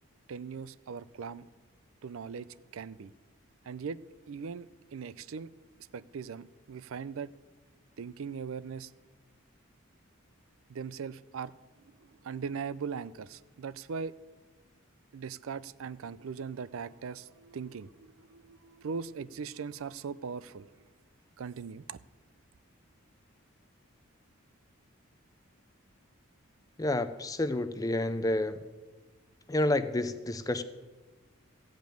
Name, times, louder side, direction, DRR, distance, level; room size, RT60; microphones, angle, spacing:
voice 1, 0.3-1.5 2.0-2.5 2.7-3.1 3.6-4.0 4.3-5.5 5.9-7.3 8.0-8.9 10.7-11.5 11.8-14.1 15.1-20.7 21.4-22.0, right 6 dB, 75° right, 17 dB, 0.4 m, -40 dB
voice 2, 26.8-28.6 29.5-30.6, left 1 dB, 15° left, 11 dB, 0.5 m, -29 dB
15.0 x 5.2 x 9.1 m, 1.3 s
head